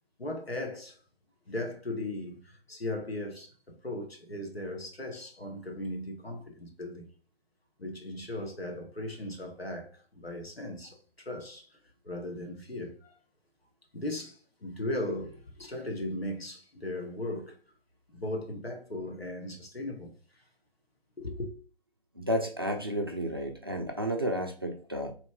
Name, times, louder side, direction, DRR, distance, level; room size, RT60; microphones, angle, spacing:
voice 1, 0.2-1.0 1.5-7.1 7.8-11.8 12.0-13.2 13.9-17.6 18.1-20.1 21.2-21.5, left 1 dB, 85° left, 1.2 m, -37 dB
voice 2, 22.2-25.1, equal, 25° right, 0.4 m, -32 dB
4.0 x 3.0 x 3.6 m
figure-of-eight pair, 140°, 30 cm